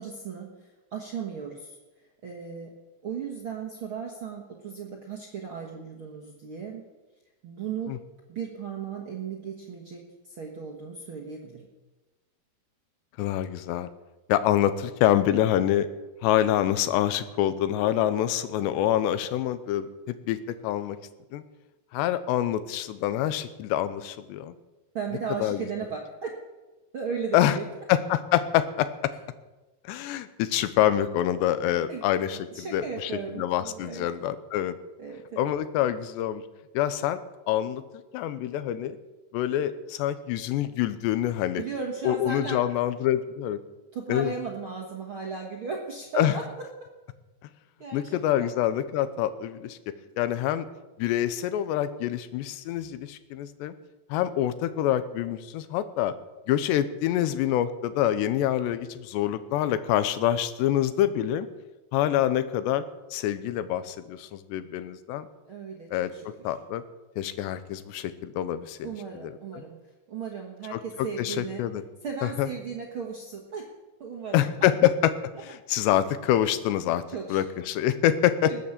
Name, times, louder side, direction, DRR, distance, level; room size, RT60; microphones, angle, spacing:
voice 1, 0.0-1.8 2.2-2.7 3.0-6.9 7.4-8.0 8.3-10.0 10.2-11.7 24.9-26.3 26.9-27.6 31.9-32.0 32.5-34.1 35.0-35.5 41.6-42.6 43.9-46.4 47.8-48.5 65.5-66.3 68.8-69.8 70.1-71.6 72.0-73.7 74.0-74.4 77.1-77.4 78.5-78.6, right 6 dB, 80° right, 0 dB, 1.2 m, -36 dB
voice 2, 13.2-13.9 14.3-15.9 16.2-21.0 21.3-21.4 21.9-24.5 25.4-25.6 27.3-27.6 27.9-28.9 29.9-34.8 35.4-36.4 36.7-37.2 37.5-37.8 38.1-39.0 39.3-41.6 42.0-43.6 44.1-44.3 46.2-46.4 47.9-49.8 50.2-50.7 51.0-53.7 54.1-56.1 56.5-61.5 61.9-62.8 63.1-65.2 65.9-66.8 67.2-68.9 69.2-69.6 70.7-70.8 71.2-71.8 72.2-72.5 74.3-75.1 75.4-77.0 77.3-78.5, left 12 dB, 85° left, 13 dB, 3.0 m, -26 dB
20.0 x 8.4 x 7.3 m, 1.1 s
omnidirectional pair, 4.9 m